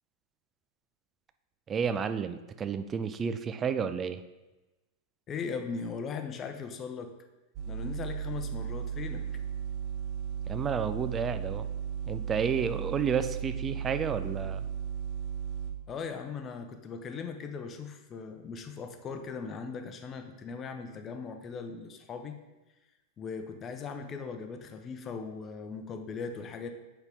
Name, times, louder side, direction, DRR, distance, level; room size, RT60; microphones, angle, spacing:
voice 1, 1.7-4.2 10.5-11.7 12.1-14.6, right 6 dB, 25° right, 11 dB, 0.5 m, -31 dB
voice 2, 5.3-7.1 7.7-9.3 15.9-22.4 23.2-26.7, left 5 dB, 25° left, 6 dB, 0.8 m, -39 dB
sound 1, 7.6-15.7, right 8 dB, 40° right, 1.0 m, -35 dB
8.0 x 5.6 x 3.5 m, 1.1 s
figure-of-eight pair, 90°, 0 cm